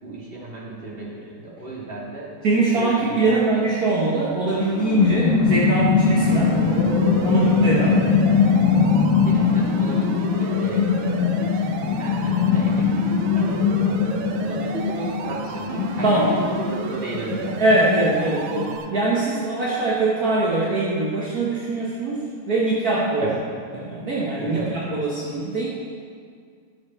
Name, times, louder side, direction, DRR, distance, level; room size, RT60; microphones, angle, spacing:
voice 1, 0.0-2.3 2.7-3.4 7.8-8.1 9.2-17.8 23.2-23.4 24.4-24.8, right 2 dB, 20° right, -5 dB, 1.8 m, -34 dB
voice 2, 2.4-6.5 7.2-8.0 16.0-16.3 17.6-23.3 23.7-25.7, right 2 dB, 55° right, -6 dB, 1.0 m, -22 dB
sound 1, 4.5-18.8, left 5 dB, 85° left, 1.0 m, -21 dB
sound 2, 6.2-18.9, right 6 dB, 80° right, 2.0 m, -33 dB
14.0 x 6.6 x 4.4 m, 2.1 s
omnidirectional pair, 3.4 m